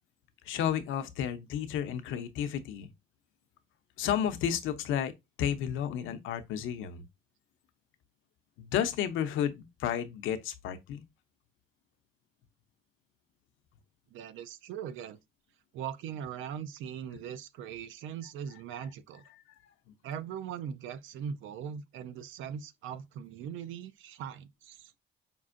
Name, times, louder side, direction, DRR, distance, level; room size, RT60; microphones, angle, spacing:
voice 1, 0.4-2.9 4.0-5.1 5.4-7.0 8.6-11.0, left 9 dB, 90° left, 0.6 m, -32 dB
voice 2, 14.1-15.2 15.7-19.2 20.0-24.9, right 8 dB, 80° right, 0.4 m, -40 dB
5.2 x 2.5 x 2.5 m
cardioid pair, 90°, 20 cm